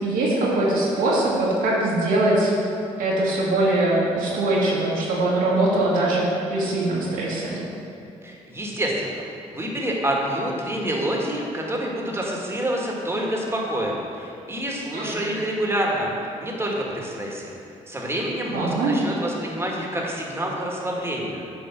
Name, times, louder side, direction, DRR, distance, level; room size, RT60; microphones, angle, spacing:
voice 1, 0.0-2.5 3.0-7.6 14.9-15.3 18.5-18.9, right 2 dB, 75° right, -6 dB, 1.8 m, -22 dB
voice 2, 8.2-9.2 9.5-16.1 16.4-17.5 17.9-21.4, right 1 dB, 15° right, -2 dB, 1.8 m, -27 dB
8.6 x 3.6 x 5.9 m, 2.8 s
supercardioid pair, 55°, 15 cm